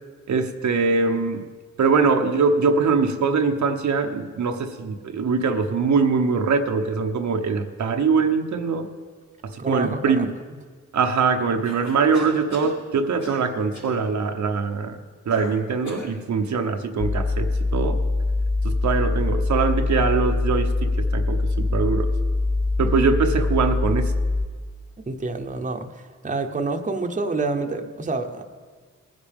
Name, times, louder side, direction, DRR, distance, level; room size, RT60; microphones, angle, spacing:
voice 1, 0.3-1.5 1.8-8.9 9.4-10.3 10.9-15.0 15.3-18.0 18.6-22.1 22.8-24.1, right 5 dB, 70° right, 5 dB, 0.9 m, -22 dB
voice 2, 9.6-10.3 25.1-28.4, right 3 dB, 25° right, 5 dB, 0.9 m, -28 dB
Cough, 11.6-12.8 13.2-13.5 13.7-14.0 15.3-16.2, left 2 dB, 80° left, 4.8 m, -39 dB
sound 1, 17.0-24.5, left 2 dB, 15° left, 0.4 m, -23 dB
19.5 x 10.5 x 3.6 m, 1.5 s
cardioid pair, 90°, 30 cm